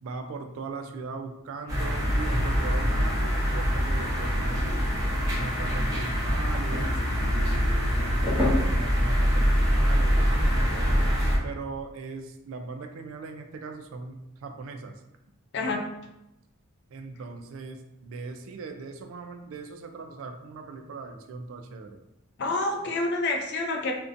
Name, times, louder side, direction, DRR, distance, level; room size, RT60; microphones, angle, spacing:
voice 1, 0.0-4.7 5.3-10.9 11.4-14.9 16.9-22.0, right 3 dB, 65° right, 6 dB, 0.3 m, -39 dB
sound 1, 1.7-11.4, equal, 15° right, 0.7 m, -24 dB
voice 2, 15.5-15.9 22.4-23.9, left 2 dB, 50° left, 2 dB, 0.4 m, -28 dB
2.5 x 2.1 x 2.5 m, 0.88 s
head